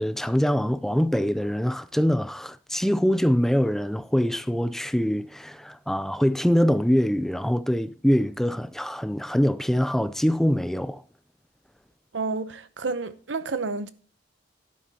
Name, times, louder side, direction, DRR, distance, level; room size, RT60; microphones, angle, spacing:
voice 1, 0.0-11.0, equal, ahead, 0.4 m, -24 dB
voice 2, 12.1-13.9, right 4 dB, 85° right, 0.8 m, -30 dB
11.5 x 9.4 x 2.9 m
head